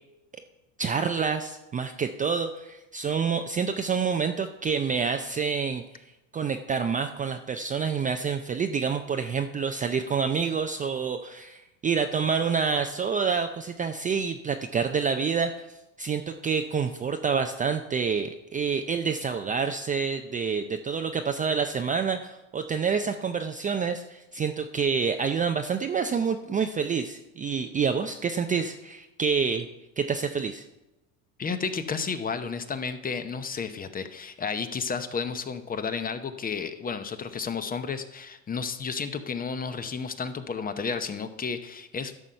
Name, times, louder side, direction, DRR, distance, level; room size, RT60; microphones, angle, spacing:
voice 1, 0.8-6.0 6.3-29.7 30.0-30.6, right 6 dB, 20° right, 6 dB, 0.4 m, -28 dB
voice 2, 31.4-42.2, left 5 dB, 20° left, 10 dB, 0.7 m, -32 dB
11.5 x 6.2 x 5.5 m, 0.96 s
supercardioid pair, 105°, 42 cm